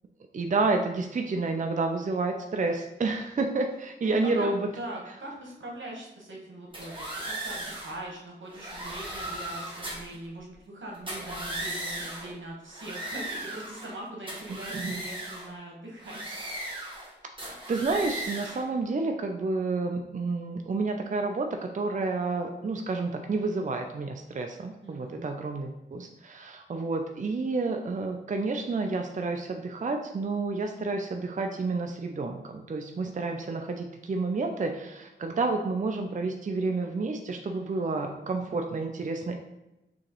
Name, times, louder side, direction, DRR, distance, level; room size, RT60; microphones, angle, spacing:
voice 1, 0.3-4.7 14.5-15.0 17.4-21.5 21.7-39.4, right 3 dB, 40° right, 4 dB, 0.4 m, -30 dB
voice 2, 4.0-6.9 7.2-16.4 24.8-25.3 37.5-38.1, right 1 dB, 85° right, -2 dB, 1.2 m, -41 dB
sound 1, 6.7-8.0 8.5-10.1 10.9-12.3 12.7-14.0 14.3-15.5 16.0-17.1 17.4-18.6, right 1 dB, 25° right, 1.2 m, -37 dB
6.1 x 3.0 x 3.0 m, 0.95 s
wide cardioid pair, 85°, 19 cm